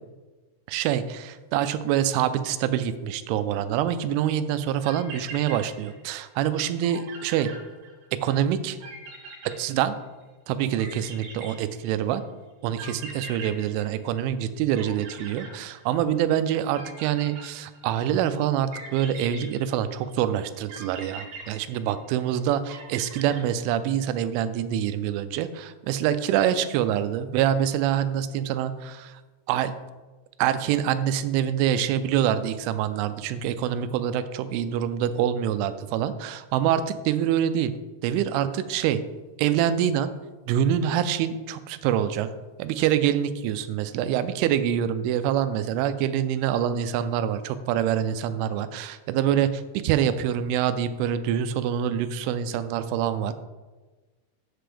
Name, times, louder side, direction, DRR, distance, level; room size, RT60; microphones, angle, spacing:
voice 1, 0.7-7.5 8.1-8.8 9.6-10.0 10.5-12.2 12.6-29.1 29.5-29.7 30.4-37.7 38.0-39.0 39.4-40.1 40.5-42.3 42.6-53.4, right 10 dB, 90° right, 11 dB, 3.0 m, -25 dB
sound 1, 4.6-4.7 4.8-6.2 6.5-6.6 6.8-8.2 8.8-10.2 10.8-12.1 12.8-14.4 14.7-16.2 16.7-18.0 18.7-20.1 20.7-22.2 22.7-23.9, right 3 dB, 55° right, 3.6 m, -42 dB
8.2 x 7.8 x 3.4 m, 1.2 s
omnidirectional pair, 5.4 m